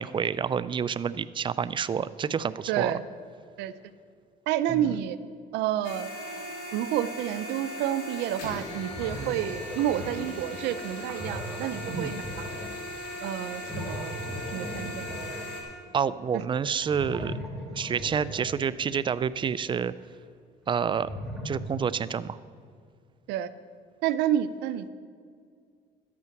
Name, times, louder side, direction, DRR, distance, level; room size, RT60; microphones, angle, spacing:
voice 1, 0.0-2.9 4.7-4.9 9.2-9.3 11.9-12.1 15.9-17.3 17.7-19.9 20.7-21.1 21.4-22.4, right 7 dB, 30° right, 16 dB, 0.4 m, -28 dB
voice 2, 2.7-3.0 3.6-3.7 4.5-5.2 5.5-6.1 6.7-12.5 13.2-14.2 14.5-15.1 23.3-23.5 24.0-24.9, right 11 dB, 90° right, 13 dB, 0.5 m, -29 dB
sound 1, 5.8-15.6, left 1 dB, 85° left, 2.5 m, -38 dB
sound 2, 8.7-19.3 20.6-21.6, equal, ahead, 2.1 m, -39 dB
12.0 x 8.4 x 5.9 m, 2.2 s
cardioid pair, 110°, 17 cm